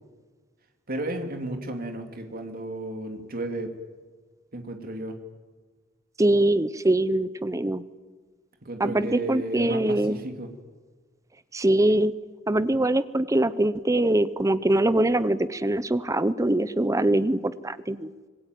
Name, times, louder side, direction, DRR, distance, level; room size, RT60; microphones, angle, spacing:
voice 1, 0.9-3.7 4.5-5.2 8.6-10.5, right 1 dB, 45° right, 5 dB, 2.6 m, -33 dB
voice 2, 6.2-7.8 8.8-10.2 11.5-12.1 12.5-18.1, right 1 dB, 15° right, 15 dB, 0.7 m, -23 dB
26.0 x 20.5 x 9.2 m, 1.4 s
head